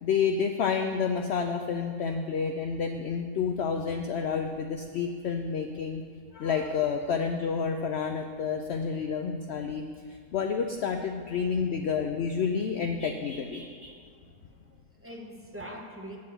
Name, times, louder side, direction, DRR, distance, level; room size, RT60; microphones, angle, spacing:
voice 1, 0.0-6.0 6.3-14.0, left 6 dB, 85° left, 5 dB, 0.5 m, -29 dB
voice 2, 14.3-16.2, equal, 20° right, 0 dB, 0.3 m, -44 dB
7.8 x 5.4 x 7.6 m, 2.2 s
omnidirectional pair, 1.7 m